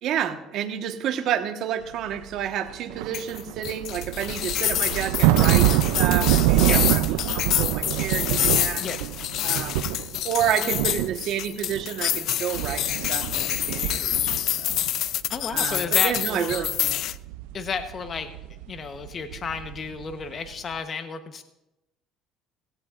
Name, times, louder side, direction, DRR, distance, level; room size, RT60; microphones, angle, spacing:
voice 1, 0.0-8.8 9.4-9.9 10.2-14.3 14.6-14.7 15.5-17.0, right 10 dB, 65° right, 6 dB, 1.4 m, -30 dB
sound 1, 2.2-2.3 2.7-10.4 10.6-12.2 12.5-15.1 15.4-20.2 20.5-20.7, right 15 dB, 85° right, 0.4 m, -26 dB
sound 2, 3.1-17.1, left 13 dB, 65° left, 0.4 m, -27 dB
voice 2, 15.3-16.7 17.5-21.4, left 5 dB, 40° left, 8 dB, 1.0 m, -33 dB
17.0 x 16.5 x 2.5 m, 0.95 s
supercardioid pair, 95°, 0 cm